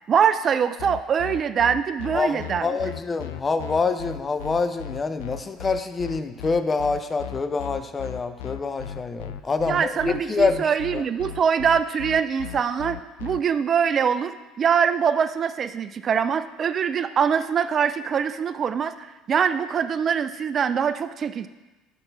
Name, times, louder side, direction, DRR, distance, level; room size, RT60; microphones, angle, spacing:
voice 1, 0.1-2.8 9.7-21.5, right 7 dB, 45° right, 12 dB, 0.3 m, -23 dB
sound 1, 0.8-13.4, left 10 dB, 85° left, 0.3 m, -36 dB
voice 2, 2.1-11.0, left 4 dB, 30° left, 10 dB, 0.5 m, -26 dB
5.8 x 5.4 x 4.5 m, 1.1 s
hypercardioid pair, 75°, 0 cm